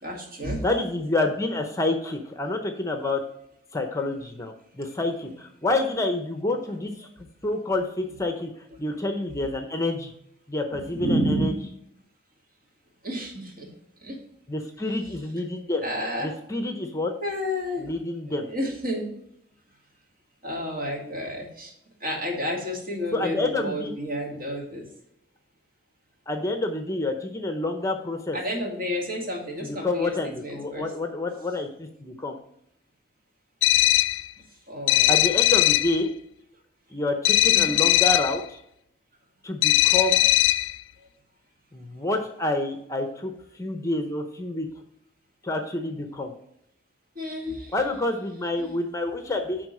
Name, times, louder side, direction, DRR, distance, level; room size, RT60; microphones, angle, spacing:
voice 1, 0.0-0.6 5.2-5.3 10.7-11.5 13.0-13.7 14.0-14.2 15.8-16.3 17.2-17.9 18.4-19.1 20.4-21.7 22.0-24.8 28.3-30.1 30.4-30.9 34.7-35.2 37.4-37.8 47.2-47.7 48.6-48.7, equal, 50° right, 0 dB, 2.2 m, -30 dB
voice 2, 0.6-3.2 3.7-6.9 7.4-8.5 8.8-10.1 10.5-11.5 14.5-15.8 16.2-17.1 17.8-18.5 23.1-23.9 26.3-28.4 29.6-32.4 35.1-36.1 36.9-38.6 39.4-40.3 41.7-44.7 45.4-46.3 47.7-49.7, left 2 dB, 15° left, 6 dB, 0.7 m, -28 dB
sound 1, 33.6-34.3 34.9-36.0 37.2-38.4 39.6-40.8, left 15 dB, 80° left, 0.3 m, -19 dB
9.6 x 3.8 x 5.4 m, 0.74 s
head